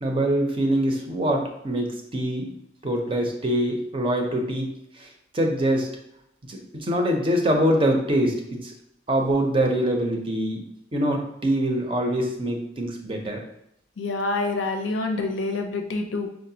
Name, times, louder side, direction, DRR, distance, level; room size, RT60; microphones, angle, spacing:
voice 1, 0.0-2.5 2.8-4.7 5.0-5.1 5.3-5.9 6.5-8.7 9.1-10.6 10.9-13.4, right 1 dB, 30° right, 2 dB, 0.5 m, -24 dB
voice 2, 14.0-16.3, left 3 dB, 90° left, 4 dB, 0.5 m, -27 dB
4.7 x 2.0 x 2.7 m, 0.80 s
head